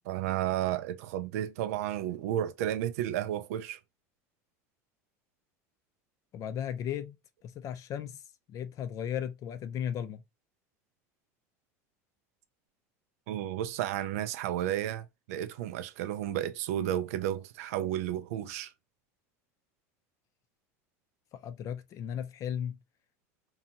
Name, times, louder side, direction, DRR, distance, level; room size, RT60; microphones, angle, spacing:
voice 1, 0.1-3.8 13.3-18.7, right 12 dB, 80° right, 0.3 m, -32 dB
voice 2, 6.3-7.2 7.4-8.2 8.5-10.2 21.3-22.8, left 9 dB, 45° left, 0.4 m, -36 dB
2.7 x 2.2 x 2.7 m
supercardioid pair, 110°, 8 cm